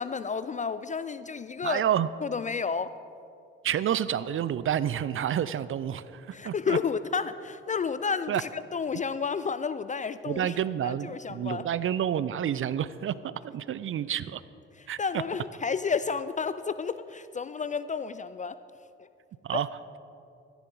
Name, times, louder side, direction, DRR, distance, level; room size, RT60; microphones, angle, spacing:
voice 1, 0.0-1.8 2.2-3.0 6.3-10.5 10.8-11.7 14.8-18.6 19.0-19.1 19.5-19.6, left 5 dB, 25° left, 0.3 m, -31 dB
voice 2, 1.6-2.1 3.6-6.8 8.3-8.4 10.3-14.4 14.9-15.0 19.4-19.7, right 9 dB, 40° right, 0.5 m, -29 dB
13.5 x 10.5 x 4.0 m
hypercardioid pair, 50°, 32 cm